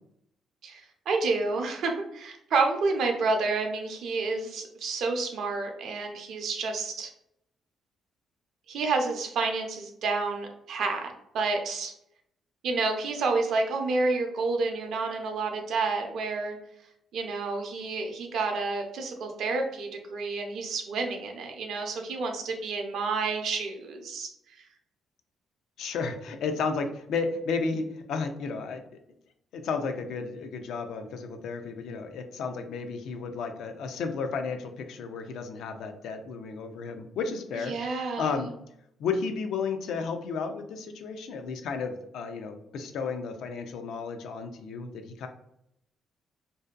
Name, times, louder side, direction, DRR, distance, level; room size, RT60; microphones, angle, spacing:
voice 1, 0.6-7.1 8.7-11.9 12.6-16.6 17.1-24.3 37.7-38.5, right 3 dB, 70° right, 3 dB, 0.5 m, -29 dB
voice 2, 25.8-28.8 29.5-38.5 39.0-45.3, left 5 dB, 80° left, 6 dB, 0.3 m, -33 dB
2.6 x 2.2 x 2.3 m, 0.76 s
cardioid pair, 90°, 0 cm